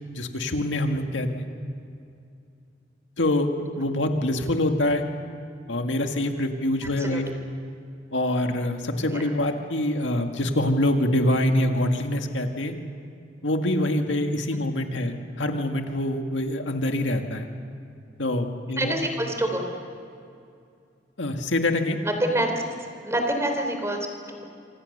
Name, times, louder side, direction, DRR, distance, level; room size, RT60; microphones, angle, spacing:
voice 1, 0.1-1.5 3.2-3.5 3.8-5.0 5.7-7.3 8.1-12.7 13.4-17.5 18.2-19.0 21.2-22.0, left 1 dB, 85° left, 4 dB, 2.0 m, -25 dB
voice 2, 18.8-19.7 22.0-22.5 23.0-24.4, right 1 dB, 15° right, 4 dB, 3.3 m, -27 dB
26.5 x 26.5 x 6.7 m, 2.5 s
head